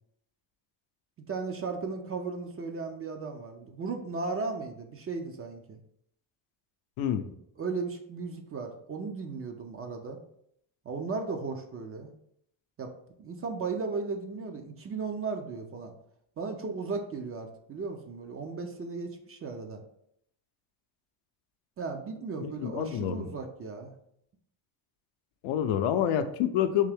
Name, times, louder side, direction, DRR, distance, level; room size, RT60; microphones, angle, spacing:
voice 1, 1.3-5.8 7.6-10.2 10.8-12.1 12.8-12.9 13.2-15.9 16.4-19.8 21.8-23.9, right 4 dB, 30° right, 5 dB, 0.4 m, -36 dB
voice 2, 22.4-23.2 25.4-26.9, left 9 dB, 75° left, 9 dB, 0.6 m, -27 dB
3.6 x 2.7 x 3.4 m, 0.72 s
cardioid pair, 110°, 47 cm